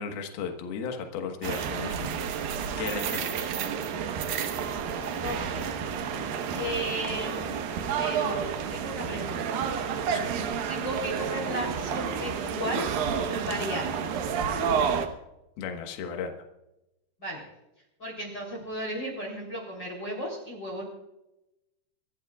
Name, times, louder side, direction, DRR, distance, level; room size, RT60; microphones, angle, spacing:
voice 1, 0.0-2.2 2.8-3.5 10.1-10.3 15.6-16.4, left 6 dB, 70° left, 4 dB, 3.2 m, -35 dB
sound 1, 1.4-15.1, right 7 dB, 70° right, 2.6 m, -30 dB
voice 2, 5.2-5.7 6.5-7.6 8.0-9.6 10.7-13.9 17.2-17.4 18.0-20.8, equal, 30° left, -2 dB, 3.7 m, -35 dB
28.0 x 13.5 x 2.4 m, 0.91 s
omnidirectional pair, 4.8 m